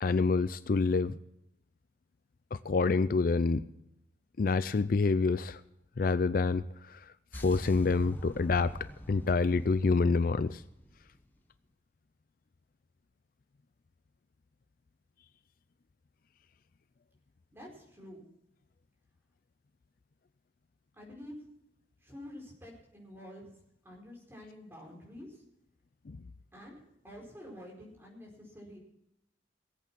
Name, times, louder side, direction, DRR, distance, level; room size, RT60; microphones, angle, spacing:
voice 1, 0.0-1.2 2.5-3.6 4.4-5.6 6.0-8.7 9.1-10.6 26.1-26.2, left 4 dB, 50° left, 14 dB, 0.4 m, -27 dB
sound 1, 7.3-11.4, equal, 10° left, 1.1 m, -46 dB
voice 2, 17.5-18.2 20.9-21.5 22.0-23.5 23.8-25.4 26.5-28.8, left 1 dB, 15° right, -2 dB, 4.7 m, -48 dB
18.0 x 8.5 x 6.0 m, 0.83 s
head